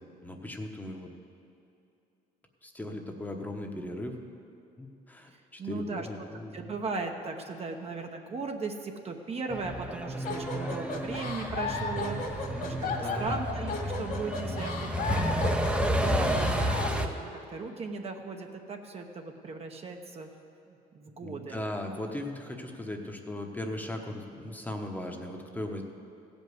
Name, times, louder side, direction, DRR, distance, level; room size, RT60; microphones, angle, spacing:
voice 1, 0.2-1.1 2.6-4.2 4.8-6.6 12.5-13.4 21.2-25.8, left 1 dB, 10° left, 2 dB, 1.0 m, -38 dB
voice 2, 5.6-6.1 6.5-15.5 16.0-20.3 20.9-21.6, right 4 dB, 35° right, 4 dB, 0.9 m, -37 dB
Truck, 9.5-17.1, equal, 5° right, 0.7 m, -31 dB
sound 1, 10.2-17.1, left 4 dB, 55° left, 2.0 m, -35 dB
15.5 x 5.3 x 8.0 m, 2.7 s
cardioid pair, 110°, 17 cm